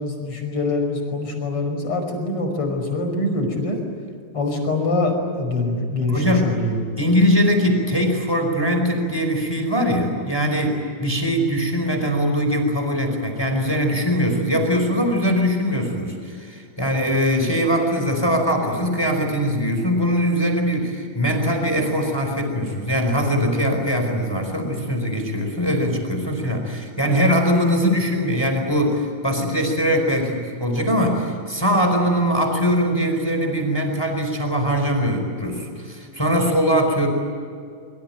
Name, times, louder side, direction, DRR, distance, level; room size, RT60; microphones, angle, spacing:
voice 1, 0.0-3.8 4.3-6.8, left 2 dB, 25° left, 4 dB, 5.8 m, -24 dB
voice 2, 6.1-6.5 7.0-37.1, equal, 5° left, 4 dB, 4.1 m, -21 dB
26.0 x 24.5 x 9.0 m, 2.3 s
omnidirectional pair, 5.8 m